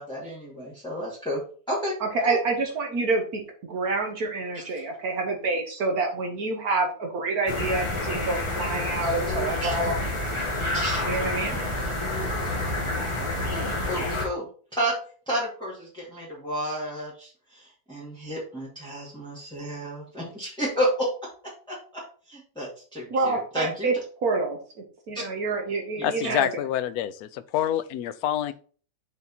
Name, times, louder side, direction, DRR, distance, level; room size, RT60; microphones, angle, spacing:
voice 1, 0.0-1.4 1.7-2.0 2.2-2.4 4.5-4.6 9.6-9.7 10.7-11.1 13.5-14.9 15.3-21.1 21.7-22.0 22.3-23.9 26.0-26.1, equal, 5° left, -7 dB, 2.1 m, -31 dB
voice 2, 2.0-10.3 11.0-11.6 23.1-24.6 25.1-26.5, right 3 dB, 70° right, 3 dB, 1.6 m, -27 dB
sound 1, 7.5-14.2, left 2 dB, 20° left, 1.5 m, -28 dB
voice 3, 26.0-28.5, left 11 dB, 75° left, 14 dB, 1.0 m, -27 dB
6.9 x 4.1 x 4.1 m, 0.42 s
omnidirectional pair, 1.7 m